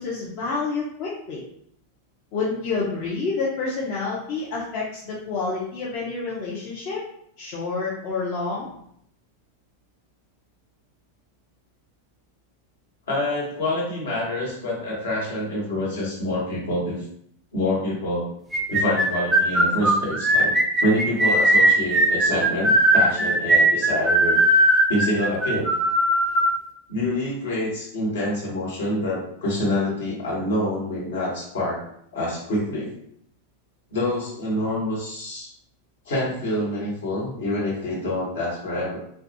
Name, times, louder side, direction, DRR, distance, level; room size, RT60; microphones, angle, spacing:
voice 1, 0.0-1.4 2.3-7.0 7.4-8.7, left 4 dB, 40° left, -6 dB, 0.5 m, -28 dB
voice 2, 13.1-17.0 17.5-18.3 18.7-20.5 20.8-24.4 24.9-25.7 26.9-31.8 32.1-32.9 33.9-35.5 36.0-39.0, left 1 dB, 65° left, -5 dB, 1.1 m, -26 dB
sound 1, 18.5-26.6, right 1 dB, 10° right, 0.4 m, -19 dB
2.2 x 2.2 x 2.7 m, 0.69 s
figure-of-eight pair, 90°, 0 cm